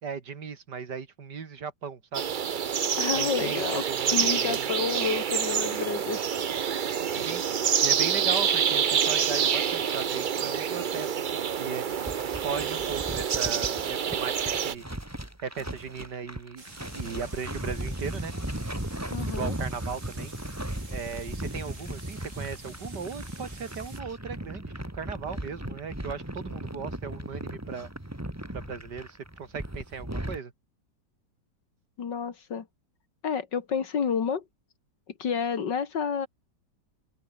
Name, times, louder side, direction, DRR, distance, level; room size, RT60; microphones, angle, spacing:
voice 1, 0.0-2.3 3.1-4.7 7.2-7.4 7.8-11.8 12.4-14.3 14.6-14.8 15.4-18.3 19.3-20.3 20.9-27.9 28.5-30.5, right 6 dB, 70° right, 2.7 m, -37 dB
sound 1, 2.1-14.7, right 8 dB, 90° right, 0.4 m, -27 dB
voice 2, 3.0-6.6 19.1-19.5 32.0-32.7 33.2-34.4 35.2-36.3, left 6 dB, 75° left, 2.6 m, -30 dB
sound 2, 11.9-30.4, right 1 dB, 10° right, 2.7 m, -37 dB
sound 3, 16.6-24.0, right 2 dB, 45° right, 4.8 m, -49 dB
omnidirectional pair, 1.9 m